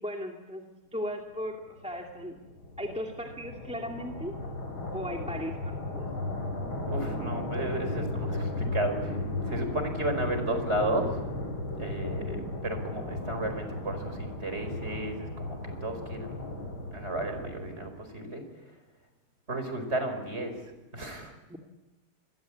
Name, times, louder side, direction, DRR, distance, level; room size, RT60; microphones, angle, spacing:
voice 1, 0.0-2.4 2.8-4.4 4.9-6.1 12.2-12.5 21.5-21.6, equal, 5° right, 1 dB, 2.3 m, -37 dB
sound 1, 1.8-18.0, left 2 dB, 75° left, 5.5 m, -35 dB
voice 2, 6.8-11.2 11.8-16.4 16.9-18.4 19.5-21.3, right 1 dB, 30° right, 7 dB, 5.2 m, -33 dB
28.5 x 22.0 x 8.6 m, 1.1 s
omnidirectional pair, 2.3 m